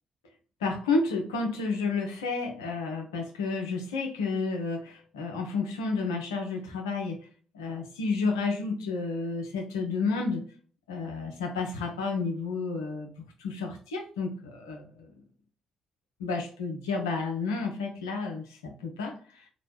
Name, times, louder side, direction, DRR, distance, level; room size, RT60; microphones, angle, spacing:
voice 1, 0.6-7.2 7.5-10.4 10.9-13.1 13.4-15.1 16.2-19.4, left 4 dB, 80° left, 3 dB, 0.5 m, -31 dB
2.9 x 2.2 x 3.1 m, 0.43 s
figure-of-eight pair, 40°, 2 cm